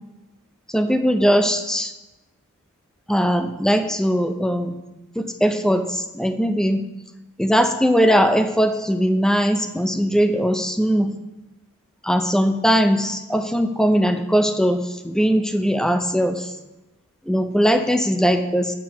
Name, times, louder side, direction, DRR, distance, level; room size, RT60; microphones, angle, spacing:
voice 1, 0.7-1.9 3.1-4.8 5.2-6.8 7.4-11.2 12.0-16.5 17.3-18.7, equal, 5° left, 8 dB, 0.4 m, -20 dB
7.5 x 4.5 x 5.6 m, 1.0 s
head